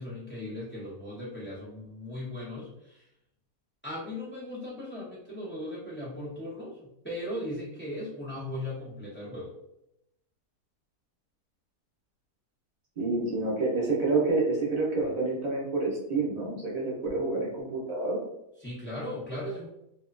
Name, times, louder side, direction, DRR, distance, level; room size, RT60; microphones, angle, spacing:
voice 1, 0.0-3.1 3.8-9.5 18.6-19.7, left 1 dB, 15° left, -8 dB, 0.4 m, -38 dB
voice 2, 13.0-18.2, right 3 dB, 90° right, -5 dB, 0.3 m, -28 dB
2.9 x 2.1 x 2.4 m, 0.83 s
omnidirectional pair, 1.7 m